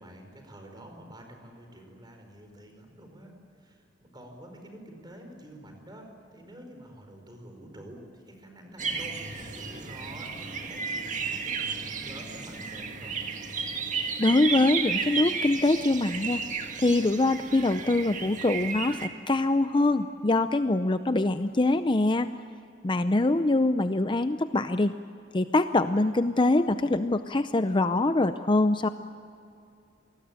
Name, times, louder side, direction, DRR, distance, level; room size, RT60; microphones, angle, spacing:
voice 1, 0.0-13.2, right 1 dB, 25° right, 4 dB, 5.1 m, -48 dB
sound 1, 8.8-19.1, right 5 dB, 40° right, 1.9 m, -33 dB
voice 2, 14.2-16.4 16.8-22.3 22.8-24.9 25.3-28.9, left 2 dB, 25° left, 10 dB, 0.6 m, -24 dB
27.5 x 20.0 x 8.9 m, 2.5 s
head